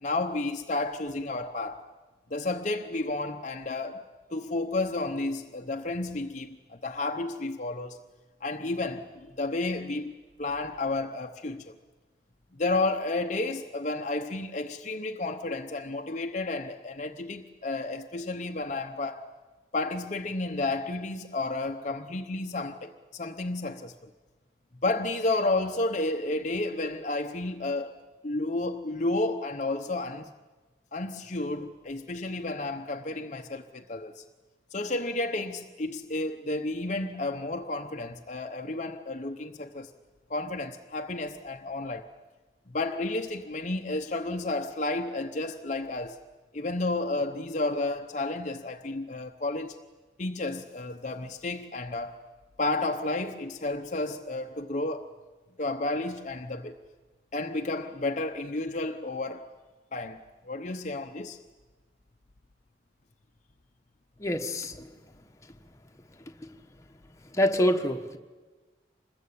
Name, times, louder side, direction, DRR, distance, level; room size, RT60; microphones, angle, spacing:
voice 1, 0.0-1.8 2.3-8.0 8.4-10.1 10.4-11.7 12.6-19.3 19.7-24.1 24.8-27.9 28.2-30.3 30.9-34.2 34.7-39.9 40.3-42.1 42.7-46.2 46.5-49.8 50.2-52.2 52.6-55.1 55.6-56.7 57.3-59.5 59.9-61.4, left 2 dB, 40° left, 0.9 m, -31 dB
voice 2, 64.2-64.9 67.3-68.2, left 1 dB, 15° left, 1.3 m, -26 dB
26.0 x 21.0 x 8.6 m
head